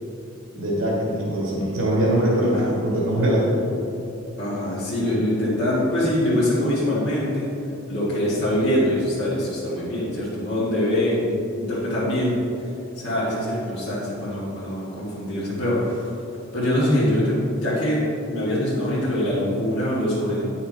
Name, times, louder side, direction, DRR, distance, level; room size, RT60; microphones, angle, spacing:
voice 1, 0.5-3.6, right 1 dB, 80° right, -5 dB, 2.0 m, -22 dB
voice 2, 4.4-7.5 7.9-12.3 13.0-16.1 16.5-20.4, left 1 dB, 55° left, -10 dB, 1.8 m, -23 dB
9.4 x 5.7 x 4.0 m, 2.8 s
head